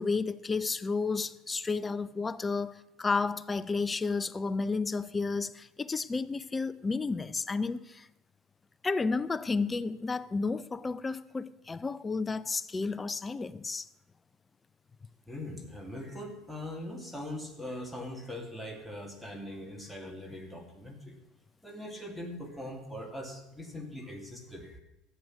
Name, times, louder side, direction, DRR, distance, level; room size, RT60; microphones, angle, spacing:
voice 1, 0.0-8.1 8.8-13.9, left 4 dB, 20° left, 0.6 m, -32 dB
voice 2, 15.3-21.2 21.6-24.8, left 1 dB, ahead, 2.2 m, -41 dB
13.5 x 7.9 x 6.3 m
hypercardioid pair, 70°, 0 cm